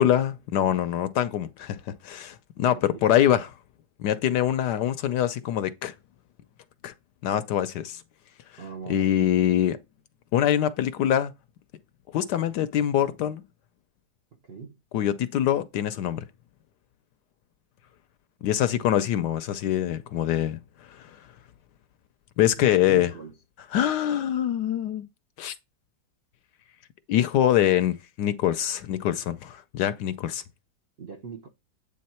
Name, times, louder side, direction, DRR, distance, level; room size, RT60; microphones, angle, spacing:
voice 1, 0.0-3.6 4.0-5.9 6.8-6.9 7.2-8.0 8.9-9.8 10.3-11.3 12.1-13.4 14.9-16.2 18.4-20.6 20.9-21.2 22.4-23.1 23.7-25.1 25.4-25.5 27.1-30.4, left 11 dB, 70° left, 1.1 m, -24 dB
voice 2, 2.7-3.0 8.6-9.5 14.3-14.8 18.8-18.9 22.6-23.4 31.0-31.5, right 5 dB, 50° right, 0.7 m, -40 dB
8.6 x 3.5 x 4.2 m
omnidirectional pair, 2.0 m